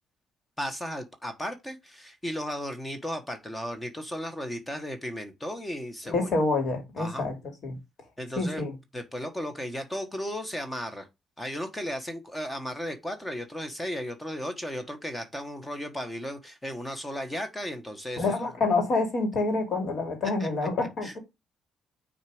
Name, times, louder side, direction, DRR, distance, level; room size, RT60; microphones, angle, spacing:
voice 1, 0.6-6.3 7.0-7.3 8.2-8.6 8.9-11.1 11.4-18.2 20.4-20.5 21.0-21.1, equal, 15° left, 1.3 m, -35 dB
voice 2, 6.0-7.8 8.3-8.7 18.2-21.2, left 3 dB, 60° left, 3.0 m, -27 dB
6.5 x 4.0 x 5.0 m
cardioid pair, 90°, 0 cm